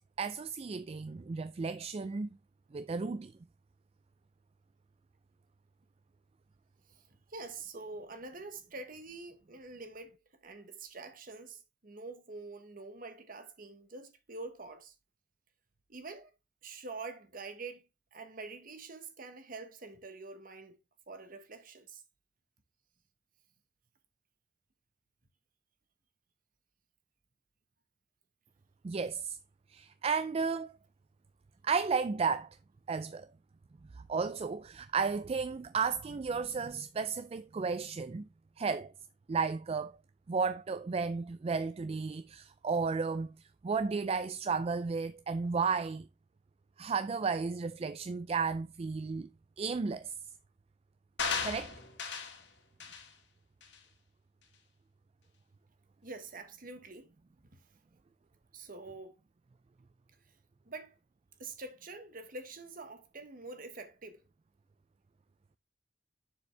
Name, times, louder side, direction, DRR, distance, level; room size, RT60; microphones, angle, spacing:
voice 1, 0.2-2.3 2.7-3.3 28.8-29.4 29.7-30.7 31.6-32.6 32.9-33.3 34.0-38.3 38.6-38.9 39.3-40.0 40.3-43.3 43.6-46.1 46.8-49.3 49.6-50.1 51.4-51.7, right 5 dB, 35° right, 0.4 m, -33 dB
voice 2, 7.3-10.2 10.4-14.9 15.9-16.3 16.6-17.8 18.1-20.8 21.1-22.0 56.0-57.1 57.5-57.6 58.5-59.2 60.6-61.0 61.4-64.2, right 3 dB, 50° right, 1.4 m, -46 dB
sound 1, 51.2-52.4 52.8-53.1 53.6-53.8, left 5 dB, 75° left, 2.0 m, -35 dB
7.1 x 6.9 x 3.3 m
head